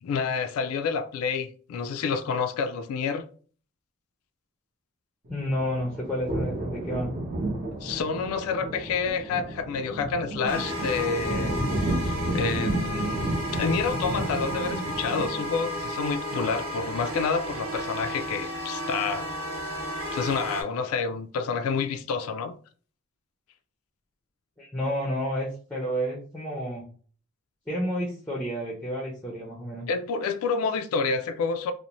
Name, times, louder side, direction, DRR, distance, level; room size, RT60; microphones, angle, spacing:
voice 1, 0.0-3.2 7.8-13.3 13.5-19.3 20.1-22.5 29.9-31.7, left 5 dB, 80° left, 0.3 m, -29 dB
sound 1, 5.2-15.7, right 1 dB, 45° right, 0.8 m, -32 dB
voice 2, 5.3-7.2 24.6-26.8 27.7-29.9, equal, 5° left, 0.5 m, -30 dB
sound 2, 10.5-20.6, equal, 70° right, 0.9 m, -33 dB
2.6 x 2.0 x 2.9 m
head